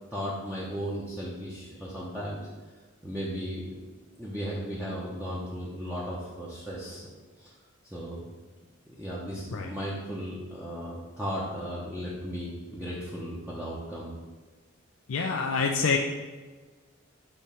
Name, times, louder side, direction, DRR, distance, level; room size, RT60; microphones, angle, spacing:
voice 1, 0.1-2.4 3.0-3.8 4.2-7.1 7.4-7.5 7.8-8.3 8.9-14.1, equal, 10° right, -7 dB, 0.9 m, -36 dB
voice 2, 15.1-16.0, left 5 dB, 85° left, 2 dB, 0.5 m, -26 dB
7.0 x 3.2 x 5.6 m, 1.3 s
head